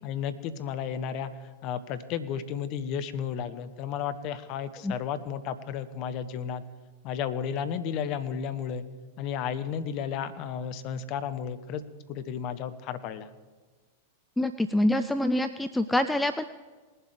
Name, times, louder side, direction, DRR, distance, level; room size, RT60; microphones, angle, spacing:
voice 1, 0.0-1.3 1.6-6.6 7.0-8.9 9.2-11.8 12.1-13.3, left 8 dB, 45° left, 11 dB, 0.9 m, -33 dB
voice 2, 14.4-16.5, left 1 dB, 5° left, 10 dB, 0.4 m, -25 dB
19.5 x 7.5 x 4.9 m, 1.4 s
figure-of-eight pair, 95°, 0 cm